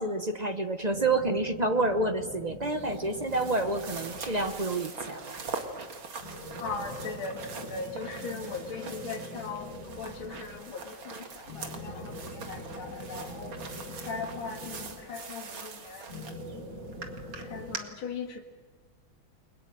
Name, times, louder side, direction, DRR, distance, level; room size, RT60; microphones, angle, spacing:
voice 1, 0.0-5.4, right 2 dB, 35° right, 8 dB, 0.6 m, -29 dB
sound 1, 0.9-5.1 6.2-10.8 11.5-15.5 16.1-17.8, left 1 dB, 30° left, 7.1 m, -43 dB
sound 2, 2.6-17.8, right 4 dB, 70° right, 2.8 m, -43 dB
voice 2, 6.6-16.6 17.4-18.4, left 4 dB, 75° left, 1 dB, 2.8 m, -40 dB
30.0 x 22.5 x 7.7 m, 1.4 s
omnidirectional pair, 2.3 m